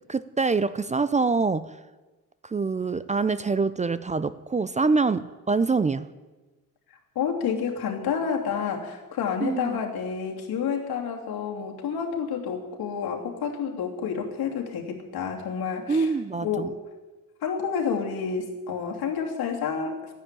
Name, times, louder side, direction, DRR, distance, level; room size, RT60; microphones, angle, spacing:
voice 1, 0.1-1.7 2.4-6.1 9.4-9.8 15.9-16.7, right 4 dB, 20° right, 15 dB, 0.4 m, -25 dB
voice 2, 7.1-16.1 16.4-16.7 17.4-20.1, left 6 dB, 85° left, 1 dB, 3.0 m, -29 dB
13.0 x 10.0 x 10.0 m, 1.2 s
cardioid pair, 135°, 36 cm